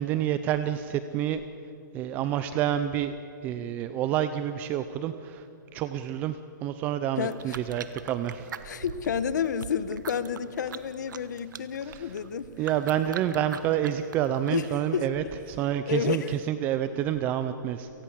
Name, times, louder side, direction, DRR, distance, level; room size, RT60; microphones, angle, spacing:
voice 1, 0.0-1.4 1.9-3.2 3.4-5.5 5.7-8.6 11.8-12.1 12.6-17.9, right 11 dB, 15° right, 11 dB, 0.5 m, -28 dB
voice 2, 7.2-7.6 8.6-12.5 14.5-15.3 15.8-16.3, left 7 dB, 65° left, 14 dB, 1.3 m, -30 dB
sound 1, 7.3-14.8, right 7 dB, 75° right, 1.4 m, -44 dB
30.0 x 19.0 x 7.5 m, 2.8 s
hypercardioid pair, 170°, 10 cm